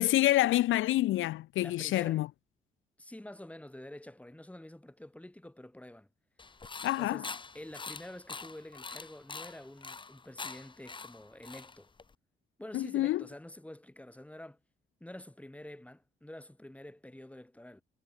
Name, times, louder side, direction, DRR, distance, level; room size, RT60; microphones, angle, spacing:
voice 1, 0.0-2.3 6.8-7.2 12.7-13.2, left 15 dB, 85° left, 1.1 m, -27 dB
voice 2, 1.6-2.2 3.0-6.1 7.0-7.3 7.5-11.9 12.6-14.6 15.0-17.8, left 1 dB, 5° left, 6.4 m, -48 dB
sound 1, 6.4-12.1, left 4 dB, 25° left, 1.2 m, -45 dB
cardioid pair, 90°, 20 cm